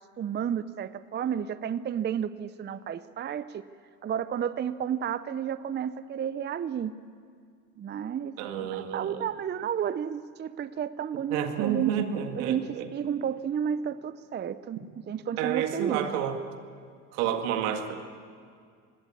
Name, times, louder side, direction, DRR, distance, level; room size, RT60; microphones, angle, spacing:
voice 1, 0.2-3.7 4.0-6.9 7.8-8.3 8.6-11.9 12.3-16.1, right 8 dB, 25° right, 15 dB, 0.6 m, -31 dB
voice 2, 8.4-9.2 11.3-12.9 15.4-16.4 17.1-17.9, right 9 dB, 70° right, 6 dB, 2.1 m, -30 dB
20.0 x 17.0 x 8.7 m, 2.2 s
hypercardioid pair, 80°, 44 cm